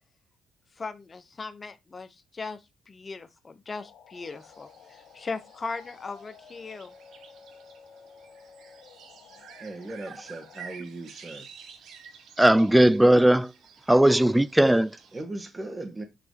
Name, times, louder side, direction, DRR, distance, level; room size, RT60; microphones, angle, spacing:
voice 1, 0.8-6.9, left 4 dB, 30° left, 1.0 m, -38 dB
sound 1, 3.7-10.8, left 7 dB, 75° left, 0.9 m, -53 dB
sound 2, 4.1-15.2, right 7 dB, 70° right, 1.2 m, -51 dB
voice 2, 9.6-11.5 15.1-16.0, right 2 dB, 25° right, 1.7 m, -38 dB
voice 3, 12.4-13.5 13.9-15.0, right 1 dB, 10° right, 0.3 m, -18 dB
6.9 x 3.4 x 4.7 m
cardioid pair, 90°, 0 cm